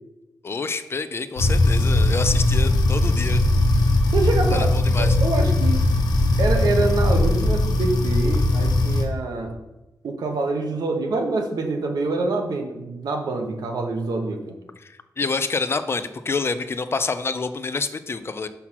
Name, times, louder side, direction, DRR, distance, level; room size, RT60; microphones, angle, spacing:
voice 1, 0.4-3.4 4.5-5.2 14.8-18.5, left 4 dB, 35° left, 11 dB, 0.4 m, -27 dB
sound 1, 1.4-9.0, left 2 dB, 80° left, 1.1 m, -19 dB
voice 2, 4.1-5.8 6.4-9.6 10.0-14.6, right 3 dB, 75° right, 4 dB, 1.0 m, -26 dB
5.7 x 4.2 x 6.0 m, 1.0 s
wide cardioid pair, 100°, 7 cm